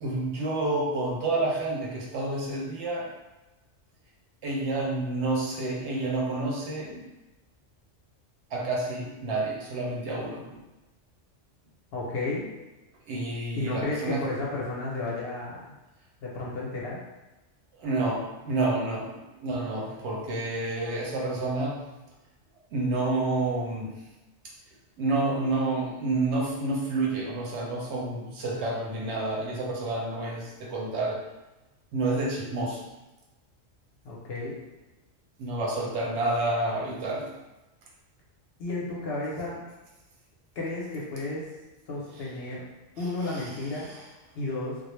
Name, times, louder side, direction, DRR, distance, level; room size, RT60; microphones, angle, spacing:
voice 1, 0.0-3.1 4.4-7.1 8.5-10.6 13.1-14.3 17.8-21.9 22.7-24.0 25.0-31.2 31.9-32.8 35.4-37.4 42.1-42.2 43.0-44.1, right 2 dB, 70° right, -2 dB, 0.8 m, -29 dB
voice 2, 11.9-12.4 13.6-15.6 16.2-17.0 34.0-34.5 38.6-39.6 40.6-41.4 41.9-42.6 43.0-43.9 44.3-44.8, left 2 dB, 65° left, -5 dB, 0.7 m, -32 dB
2.2 x 2.0 x 3.0 m, 1.1 s
omnidirectional pair, 1.3 m